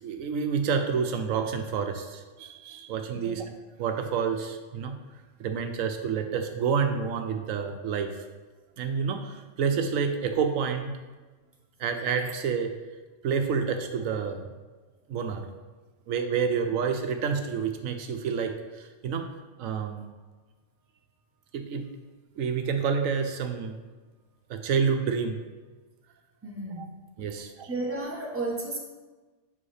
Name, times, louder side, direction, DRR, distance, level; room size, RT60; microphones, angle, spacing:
voice 1, 0.0-3.5 3.8-5.0 5.4-8.2 8.8-10.9 11.8-12.7 13.2-14.5 15.1-15.5 16.1-19.3 19.6-20.0 21.5-21.9 22.4-23.8 24.5-25.5 27.2-27.7, right 6 dB, 90° right, 6 dB, 1.1 m, -28 dB
voice 2, 26.4-26.9 27.7-28.8, right 2 dB, 10° right, -1 dB, 1.0 m, -33 dB
7.7 x 5.7 x 3.3 m, 1.3 s
omnidirectional pair, 1.3 m